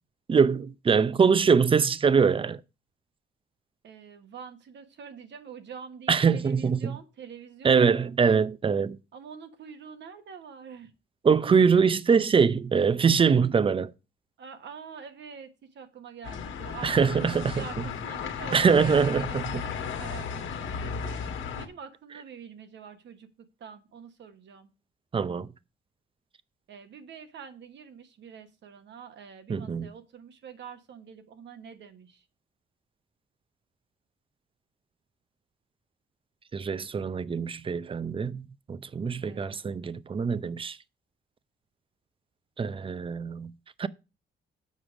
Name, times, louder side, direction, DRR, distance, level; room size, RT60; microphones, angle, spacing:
voice 1, 0.3-2.6 6.1-6.9 7.6-9.0 11.2-13.9 16.8-17.6 18.5-19.6 25.1-25.5 29.5-29.9 36.5-40.8 42.6-43.5 43.8-43.9, right 6 dB, 25° right, 0.5 m, -23 dB
voice 2, 3.8-8.1 9.1-10.9 14.4-23.3 23.6-24.7 26.7-32.2 39.2-39.6, right 6 dB, 65° right, 1.3 m, -45 dB
sound 1, 16.2-21.7, left 6 dB, 75° left, 1.3 m, -35 dB
7.3 x 4.9 x 6.1 m
cardioid pair, 90°, 20 cm